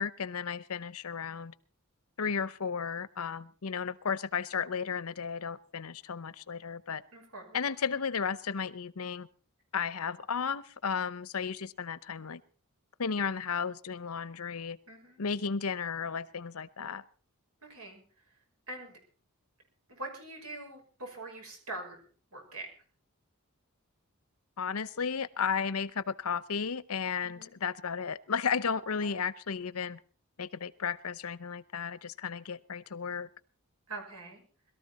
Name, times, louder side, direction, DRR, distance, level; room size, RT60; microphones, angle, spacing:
voice 1, 0.0-1.5 2.2-7.0 7.5-9.3 9.7-12.4 13.0-14.8 15.2-17.0 24.6-30.0 30.4-33.3, left 6 dB, 80° left, 18 dB, 0.8 m, -34 dB
voice 2, 7.1-7.6 14.9-15.2 17.6-18.0 18.7-19.0 19.9-22.0 22.3-22.7 27.2-27.5 29.0-29.2 33.9-34.4, right 2 dB, 80° right, 3 dB, 5.9 m, -43 dB
22.0 x 13.5 x 4.2 m, 0.40 s
head